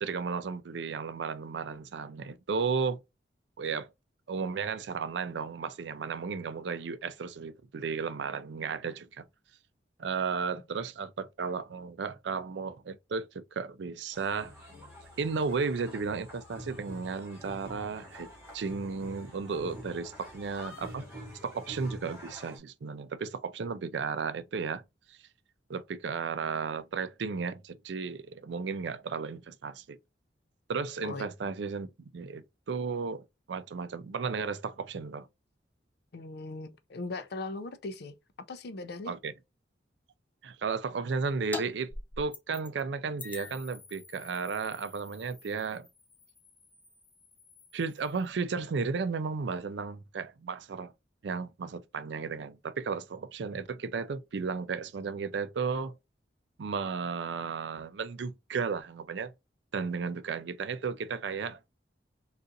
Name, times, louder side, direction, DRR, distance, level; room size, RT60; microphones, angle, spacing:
voice 1, 0.0-3.0 3.6-3.9 4.3-9.2 10.0-14.5 15.2-21.1 21.4-24.8 25.1-25.2 25.7-30.0 30.7-35.3 39.1-39.3 40.4-41.9 42.2-45.9 47.7-50.9 51.2-56.0 56.6-59.3 59.7-61.6, right 5 dB, 70° right, 0.4 m, -34 dB
sound 1, 14.1-22.6, equal, 15° right, 1.4 m, -47 dB
voice 2, 36.1-38.1 38.5-39.1, left 3 dB, 60° left, 0.5 m, -39 dB
sound 2, 41.5-41.6 41.9-42.8 43.2-48.3, left 2 dB, 10° left, 0.5 m, -46 dB
3.7 x 2.4 x 2.6 m
head